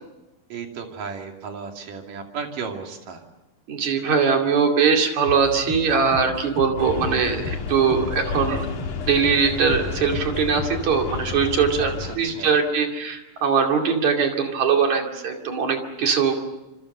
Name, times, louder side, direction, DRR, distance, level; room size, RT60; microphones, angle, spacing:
voice 1, 0.5-3.2 11.8-12.5, right 5 dB, 75° right, 3 dB, 4.3 m, -34 dB
voice 2, 3.7-8.7 9.1-16.4, right 6 dB, 60° right, 3 dB, 3.8 m, -21 dB
sound 1, 5.3-10.7, left 4 dB, 45° left, 3.8 m, -34 dB
sound 2, 6.8-12.2, left 5 dB, 80° left, 3.8 m, -32 dB
27.0 x 26.0 x 6.7 m, 1.0 s
omnidirectional pair, 3.8 m